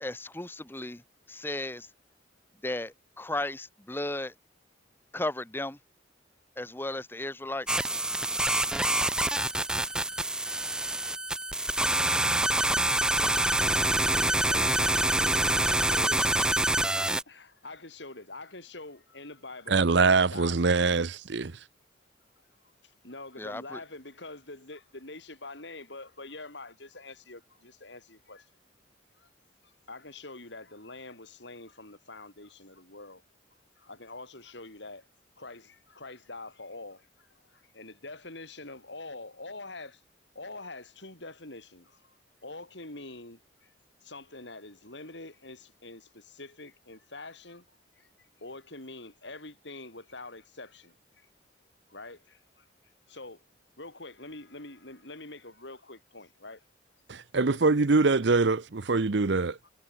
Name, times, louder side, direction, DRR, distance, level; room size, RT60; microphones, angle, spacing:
voice 1, 0.0-1.0 1.3-1.9 2.6-4.3 5.1-5.8 6.6-7.8 23.4-23.8, left 2 dB, 10° left, 1.0 m, -35 dB
sound 1, 7.7-17.2, right 1 dB, 5° right, 0.4 m, -26 dB
voice 2, 13.9-21.0 22.4-22.5 22.8-28.5 29.2-29.3 29.6-33.2 33.8-35.1 35.4-37.3 37.5-40.0 40.3-42.2 42.4-43.7 44.0-47.6 48.0-51.3 51.9-52.7 53.1-53.4 53.8-56.6 57.3-57.8 59.6-59.7, left 2 dB, 70° left, 6.2 m, -45 dB
voice 3, 19.7-21.6 57.1-59.6, right 4 dB, 70° right, 0.8 m, -24 dB
head